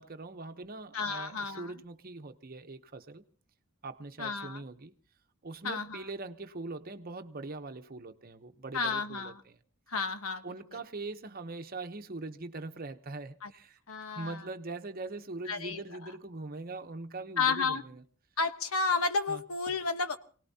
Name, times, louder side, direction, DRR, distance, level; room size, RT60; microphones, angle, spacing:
voice 1, 0.0-3.2 3.8-4.9 5.4-9.6 10.4-18.0 19.3-19.4, right 3 dB, 40° right, 0.9 m, -42 dB
voice 2, 0.9-1.7 4.2-4.6 5.6-6.0 8.7-9.4 9.9-10.4 10.7-10.8 13.4-13.5 13.9-14.4 15.5-15.8 17.4-17.8 18.4-20.2, left 4 dB, 75° left, 1.2 m, -31 dB
28.0 x 18.0 x 2.8 m
head